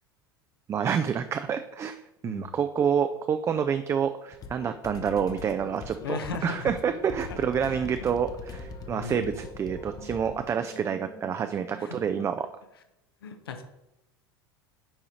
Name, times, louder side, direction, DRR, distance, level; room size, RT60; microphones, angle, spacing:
voice 1, 0.7-12.5, right 7 dB, 20° right, 9 dB, 0.3 m, -28 dB
sound 1, 4.3-10.4, left 5 dB, 30° left, 0.7 m, -41 dB
voice 2, 6.0-6.7 7.4-7.9 8.9-9.4 11.8-12.0 13.2-13.6, left 5 dB, 75° left, 8 dB, 0.8 m, -37 dB
sound 2, 7.1-12.2, right 3 dB, 55° right, 1.4 m, -48 dB
8.8 x 4.8 x 2.9 m, 0.89 s
figure-of-eight pair, 75°, 13 cm